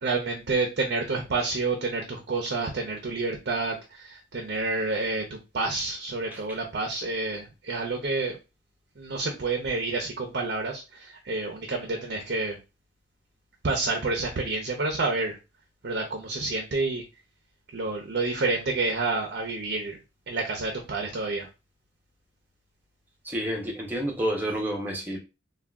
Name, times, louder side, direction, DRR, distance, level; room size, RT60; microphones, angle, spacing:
voice 1, 0.0-8.4 9.0-12.6 13.6-15.4 15.8-17.0 17.7-20.0 20.3-21.5, right 3 dB, 60° right, 0.6 m, -29 dB
voice 2, 23.2-25.2, equal, 10° right, 0.6 m, -30 dB
3.4 x 2.3 x 2.3 m
head